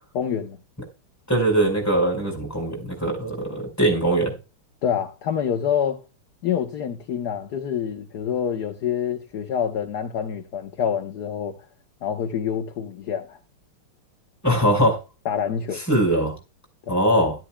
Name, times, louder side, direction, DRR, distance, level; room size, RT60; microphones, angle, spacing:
voice 1, 0.1-0.6 4.8-6.0 6.4-11.5 12.0-13.4 15.2-15.8 16.9-17.0, left 8 dB, 55° left, 1.4 m, -26 dB
voice 2, 1.3-4.3 14.4-15.0 15.9-16.3 16.9-17.3, right 1 dB, 5° left, 5.0 m, -21 dB
13.0 x 12.5 x 2.3 m
omnidirectional pair, 2.4 m